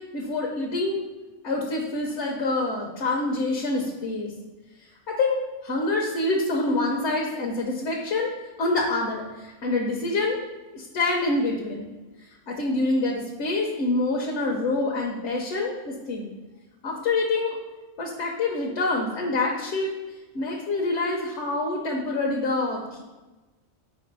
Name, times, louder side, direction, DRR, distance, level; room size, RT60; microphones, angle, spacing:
voice 1, 0.1-1.0 1.4-4.3 4.8-8.3 8.6-10.4 10.7-11.9 12.5-16.3 16.8-17.6 18.0-19.9 20.3-23.0, left 2 dB, 80° left, -1 dB, 1.1 m, -26 dB
4.6 x 4.1 x 5.3 m, 1.2 s
omnidirectional pair, 1.2 m